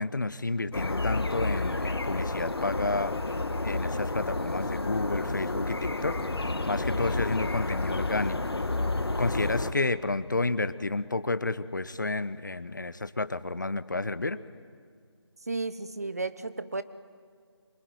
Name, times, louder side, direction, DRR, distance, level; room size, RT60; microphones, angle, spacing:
voice 1, 0.0-3.1 3.6-8.4 9.2-14.4, left 2 dB, 40° left, 16 dB, 0.9 m, -30 dB
sound 1, 0.7-9.7, left 2 dB, 60° left, 1.7 m, -30 dB
voice 2, 15.5-16.8, right 3 dB, 35° right, 13 dB, 0.9 m, -33 dB
26.0 x 23.5 x 9.4 m, 2.1 s
figure-of-eight pair, 175°, 15 cm